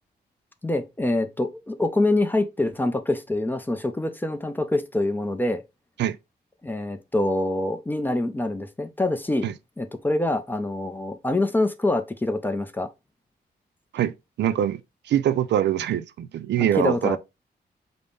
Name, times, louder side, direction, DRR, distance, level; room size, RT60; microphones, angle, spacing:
voice 1, 0.6-5.6 6.6-9.5 9.8-12.9 16.6-17.2, left 2 dB, 10° left, 0.3 m, -25 dB
voice 2, 13.9-14.8 15.1-17.2, right 11 dB, 90° right, 0.4 m, -24 dB
5.3 x 2.0 x 3.3 m
wide cardioid pair, 170°, 18 cm